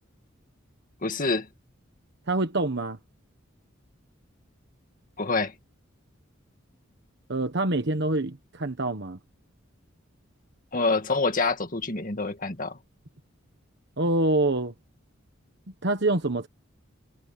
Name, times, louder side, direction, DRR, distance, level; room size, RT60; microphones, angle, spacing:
voice 1, 1.0-1.5 5.2-5.5 10.7-12.8, left 3 dB, 40° left, 2.1 m, -26 dB
voice 2, 2.3-3.0 7.3-9.2 14.0-14.7 15.8-16.5, right 2 dB, 55° right, 1.4 m, -25 dB
head